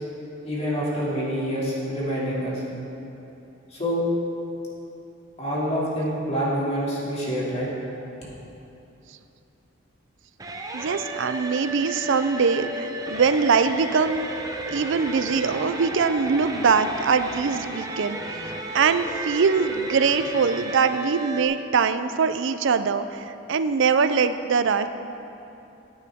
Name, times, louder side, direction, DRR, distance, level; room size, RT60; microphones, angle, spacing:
voice 1, 0.4-2.6 3.7-4.0 5.4-7.7, equal, 30° left, -7 dB, 2.6 m, -26 dB
sound 1, 10.4-21.4, right 1 dB, 20° right, 0.8 m, -34 dB
voice 2, 10.7-14.3 14.7-18.4 18.7-24.9, right 5 dB, 65° right, 11 dB, 0.5 m, -22 dB
15.5 x 9.0 x 3.6 m, 2.9 s
head